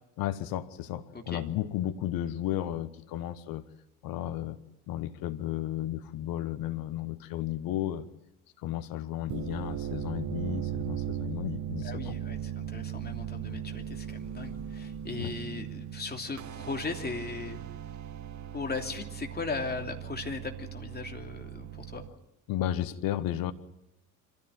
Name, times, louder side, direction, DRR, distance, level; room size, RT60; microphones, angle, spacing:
voice 1, 0.2-3.6 4.0-4.6 4.9-8.1 8.6-12.1 13.5-13.6 15.2-15.3 22.5-23.5, left 12 dB, 50° left, 13 dB, 1.1 m, -33 dB
sound 1, 9.1-22.1, right 10 dB, 40° right, 1.2 m, -38 dB
voice 2, 11.8-17.6 18.5-22.0, left 4 dB, 20° left, 3 dB, 3.0 m, -37 dB
25.5 x 15.0 x 9.3 m, 0.91 s
figure-of-eight pair, 60°, 44 cm